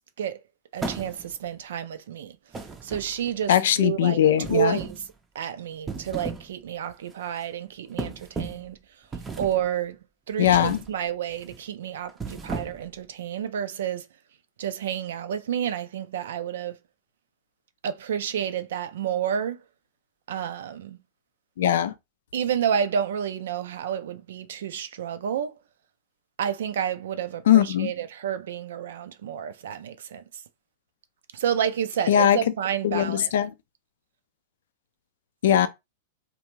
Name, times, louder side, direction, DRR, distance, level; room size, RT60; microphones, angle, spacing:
voice 1, 0.7-2.4 2.8-4.2 4.5-5.0 5.3-8.8 9.4-10.0 10.3-14.1 14.6-16.8 17.8-19.6 20.3-21.0 22.3-25.6 26.4-30.4 31.3-33.3, right 9 dB, 75° right, 0.4 m, -30 dB
sound 1, 0.8-1.5 2.5-3.4 4.4-5.1 5.7-6.5 6.9-7.1 8.0-8.7 9.1-9.7 10.4-10.9 11.3-11.6 12.1-13.0, right 4 dB, 15° right, 0.5 m, -35 dB
voice 2, 3.5-4.8 10.4-10.8 21.6-21.9 27.5-27.9 32.1-32.4 32.8-33.5 35.4-35.7, left 10 dB, 75° left, 0.3 m, -20 dB
2.4 x 2.2 x 3.0 m
hypercardioid pair, 110°, 0 cm